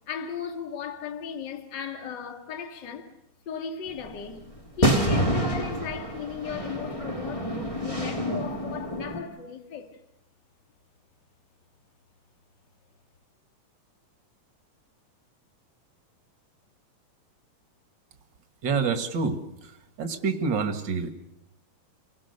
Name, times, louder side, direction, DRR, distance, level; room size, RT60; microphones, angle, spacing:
voice 1, 0.0-3.1 3.5-4.4 4.8-9.9, left 7 dB, 35° left, 2.2 m, -36 dB
sound 1, 3.9-4.1 4.4-4.5 4.8-9.2, equal, 15° left, 1.6 m, -27 dB
voice 2, 18.6-19.7 20.0-21.1, right 5 dB, 40° right, 1.9 m, -27 dB
29.0 x 19.5 x 6.7 m
omnidirectional pair, 3.8 m